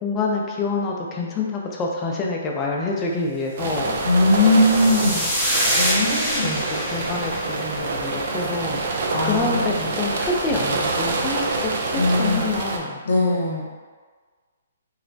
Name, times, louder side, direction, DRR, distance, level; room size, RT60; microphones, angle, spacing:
voice 1, 0.0-4.0 6.4-8.8 9.2-13.0, left 3 dB, 20° left, -1 dB, 0.4 m, -27 dB
sound 1, 3.6-12.8, right 3 dB, 55° right, 0.4 m, -26 dB
sound 2, 3.9-8.4, equal, 5° right, 0.7 m, -26 dB
voice 2, 4.0-5.2 5.8-6.5 9.1-9.7 11.9-12.5 13.1-13.6, left 2 dB, 65° left, -3 dB, 0.7 m, -20 dB
3.1 x 2.0 x 2.6 m, 1.5 s
hypercardioid pair, 135°, 0 cm